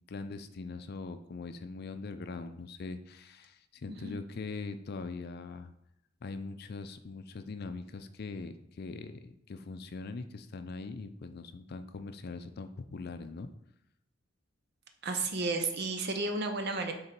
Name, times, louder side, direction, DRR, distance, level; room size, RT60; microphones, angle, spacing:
voice 1, 0.1-5.7 6.2-13.5, left 3 dB, 55° left, 9 dB, 0.5 m, -42 dB
voice 2, 15.0-16.9, right 3 dB, 60° right, 6 dB, 0.8 m, -32 dB
6.8 x 3.7 x 4.4 m, 0.78 s
head